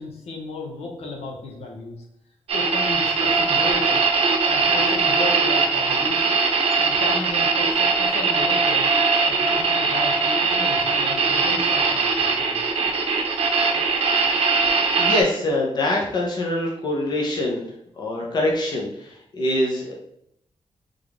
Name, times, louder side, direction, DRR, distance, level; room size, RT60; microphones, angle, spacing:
voice 1, 0.0-2.0 2.5-4.0 4.5-6.3 6.8-8.9 9.3-11.9 12.2-12.6, left 2 dB, 75° left, 0 dB, 0.9 m, -34 dB
sound 1, 2.5-15.2, right 4 dB, 70° right, 0.6 m, -20 dB
voice 2, 14.7-17.6 18.0-19.9, left 1 dB, 40° left, -2 dB, 0.8 m, -24 dB
3.6 x 3.5 x 3.5 m, 0.76 s
wide cardioid pair, 180°, 11 cm